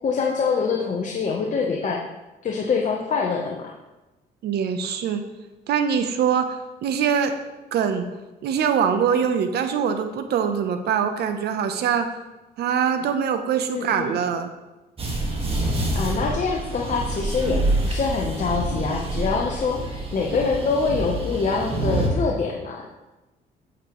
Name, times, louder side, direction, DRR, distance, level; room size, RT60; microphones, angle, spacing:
voice 1, 0.0-2.0 2.4-3.7 13.7-14.1 15.9-22.9, left 5 dB, 45° left, -1 dB, 1.0 m, -25 dB
voice 2, 4.4-5.2 5.7-7.4 7.7-8.0 8.4-12.1 12.6-14.5, right 7 dB, 75° right, 8 dB, 0.9 m, -23 dB
sound 1, 15.0-22.1, right 2 dB, 35° right, 1.8 m, -27 dB
8.8 x 7.4 x 3.1 m, 1.1 s
cardioid pair, 95°, 17 cm